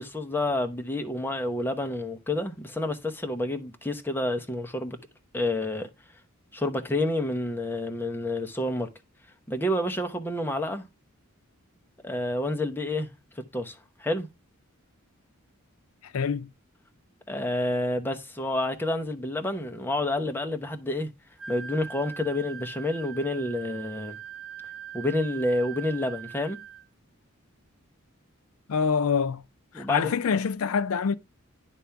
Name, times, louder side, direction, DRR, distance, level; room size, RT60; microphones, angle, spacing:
voice 1, 0.0-5.0 5.3-5.9 6.5-8.9 9.5-10.8 12.0-13.1 13.5-14.3 17.3-21.1 21.5-24.2 24.9-26.6 29.7-30.0, left 1 dB, 10° left, 0.8 m, -29 dB
voice 2, 16.0-16.5 28.7-29.4 29.7-31.1, left 6 dB, 75° left, 0.4 m, -26 dB
Wind instrument woodwind instrument, 21.4-26.9, right 8 dB, 80° right, 0.9 m, -42 dB
9.9 x 3.4 x 5.7 m
head